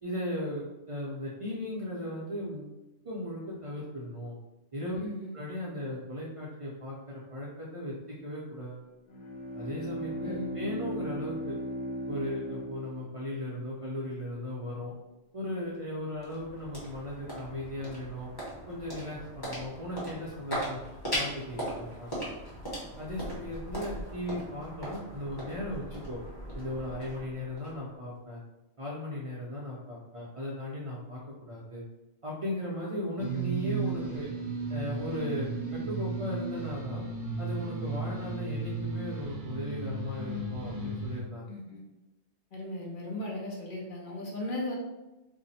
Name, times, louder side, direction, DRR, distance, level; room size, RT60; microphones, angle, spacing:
voice 1, 0.0-2.7 3.0-4.4 4.7-5.0 5.3-7.9 8.2-8.8 9.5-11.5 12.1-14.9 15.3-18.3 18.7-20.8 21.1-22.1 23.0-26.2 26.5-28.4 28.8-31.8 32.2-34.3 34.7-37.0 37.4-41.5, left 1 dB, 40° right, -6 dB, 0.5 m, -37 dB
voice 2, 5.0-5.4 10.2-10.6 41.5-41.8 42.5-44.7, left 1 dB, 55° left, -2 dB, 0.7 m, -37 dB
Bowed string instrument, 9.1-13.7, equal, 90° left, 0.9 m, -37 dB
sound 1, 15.7-28.2, equal, 20° left, 1.1 m, -39 dB
sound 2, 33.2-41.2, right 3 dB, 70° right, 1.0 m, -35 dB
2.6 x 2.1 x 4.0 m, 1.0 s
omnidirectional pair, 1.2 m